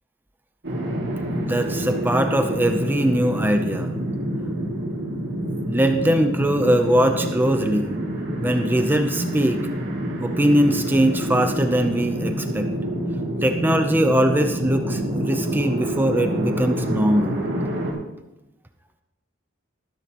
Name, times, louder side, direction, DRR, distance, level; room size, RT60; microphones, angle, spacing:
sound 1, 0.6-17.9, right 1 dB, 60° right, 2.6 m, -27 dB
voice 1, 1.4-3.9 5.7-8.0 8.4-9.7 10.2-12.7 13.4-17.4, right 1 dB, 10° right, 6 dB, 0.6 m, -21 dB
13.5 x 12.5 x 3.0 m, 1.0 s
head